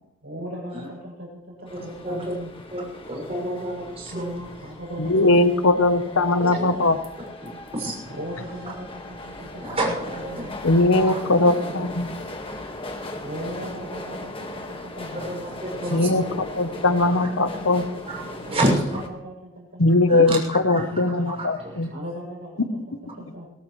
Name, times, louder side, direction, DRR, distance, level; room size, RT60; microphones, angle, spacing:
voice 1, 0.2-2.5 4.1-5.6 6.2-6.4 8.1-10.0 10.2-11.9 13.2-16.7 17.0-17.1 18.4-20.2 20.6-21.0 21.9-23.5, equal, 65° right, -3 dB, 7.9 m, -38 dB
sound 1, 1.7-19.1, left 2 dB, 25° left, 1.7 m, -38 dB
voice 2, 1.8-2.3 2.7-4.3 5.2-5.3 6.4-6.7 7.4-8.1 9.6-10.5 10.9-11.2 15.1-15.4 15.6-15.9 17.7-18.8 20.1-20.4 20.7-21.9, right 1 dB, 30° right, -2 dB, 6.4 m, -29 dB
voice 3, 5.0-7.0 10.6-12.1 15.9-16.2 16.6-17.9 19.8-21.9, left 2 dB, 75° left, 10 dB, 1.0 m, -20 dB
22.0 x 17.5 x 3.3 m, 0.89 s
head